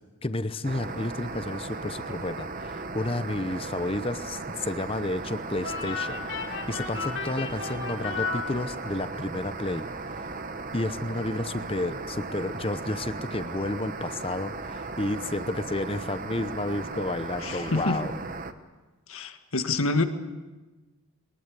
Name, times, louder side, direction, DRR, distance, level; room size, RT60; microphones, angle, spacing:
voice 1, 0.2-9.9 10.7-18.1, left 2 dB, 25° left, 12 dB, 0.8 m, -31 dB
sound 1, 0.6-18.5, right 3 dB, 40° right, 1.1 m, -37 dB
sound 2, 5.6-9.2, left 5 dB, 55° left, 2.7 m, -34 dB
voice 2, 17.4-18.0 19.1-20.0, left 2 dB, 75° left, 7 dB, 1.8 m, -27 dB
22.5 x 20.5 x 8.4 m, 1.2 s
head